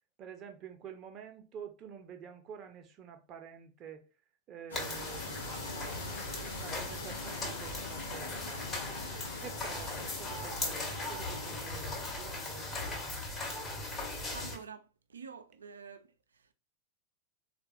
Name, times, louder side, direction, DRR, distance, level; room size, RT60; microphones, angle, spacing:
voice 1, 0.2-4.1 4.5-8.6 9.2-13.0, right 7 dB, 35° right, 0.7 m, -49 dB
sound 1, 4.7-14.6, left 3 dB, 70° left, 0.8 m, -45 dB
sound 2, 4.7-14.6, left 2 dB, 20° left, 1.2 m, -39 dB
voice 2, 14.3-16.1, right 6 dB, 70° right, 0.4 m, -47 dB
3.6 x 2.3 x 2.8 m
figure-of-eight pair, 90°, 0 cm